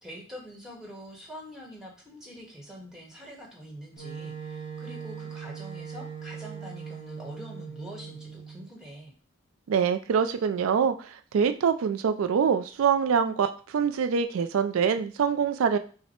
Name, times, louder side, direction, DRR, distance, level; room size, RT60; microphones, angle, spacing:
voice 1, 0.0-9.1, equal, 5° right, -2 dB, 1.1 m, -45 dB
Wind instrument woodwind instrument, 4.0-8.7, right 6 dB, 35° left, 1.1 m, -40 dB
voice 2, 9.7-15.8, right 7 dB, 85° right, 9 dB, 0.4 m, -25 dB
5.7 x 2.1 x 4.3 m, 0.40 s
head